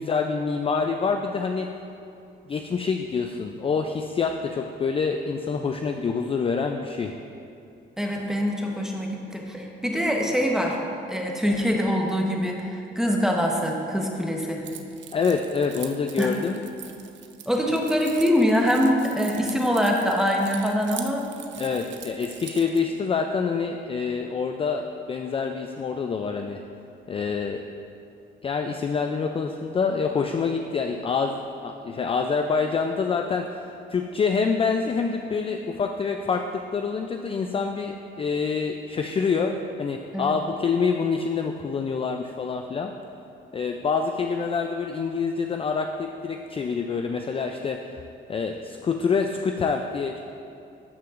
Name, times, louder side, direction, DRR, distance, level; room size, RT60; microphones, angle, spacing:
voice 1, 0.0-1.7 2.5-7.1 15.1-16.6 21.6-26.6 27.1-27.6 28.4-33.5 33.9-42.9 43.5-48.0 48.3-50.2, left 5 dB, 30° left, 4 dB, 0.4 m, -26 dB
voice 2, 8.0-10.8 11.1-14.6 16.2-16.3 17.5-21.2 40.1-40.4, equal, 5° right, 0 dB, 1.0 m, -24 dB
Keys jangling, 14.6-22.8, right 9 dB, 65° right, 0.5 m, -42 dB
13.0 x 5.7 x 2.5 m, 2.6 s
cardioid pair, 90°, 20 cm